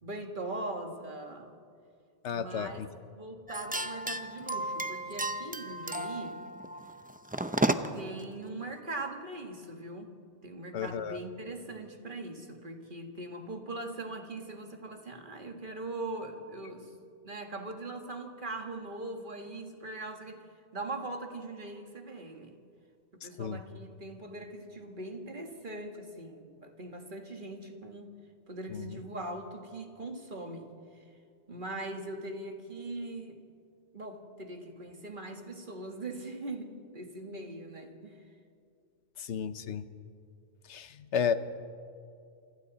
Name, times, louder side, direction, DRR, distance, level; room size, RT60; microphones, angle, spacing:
voice 1, 0.0-1.5 2.3-2.8 3.1-6.4 7.9-10.1 10.4-16.9 17.2-20.4 20.7-22.5 23.1-28.1 28.5-30.8 31.5-33.4 33.9-38.2, right 2 dB, 45° right, 4 dB, 2.0 m, -41 dB
voice 2, 2.2-2.9 10.7-11.2 23.2-23.6 28.7-29.0 39.2-39.8 40.6-41.3, left 7 dB, 80° left, 12 dB, 1.2 m, -33 dB
sound 1, 3.5-8.1, right 1 dB, 10° right, 0.5 m, -33 dB
28.0 x 25.0 x 4.1 m, 2.4 s
omnidirectional pair, 1.2 m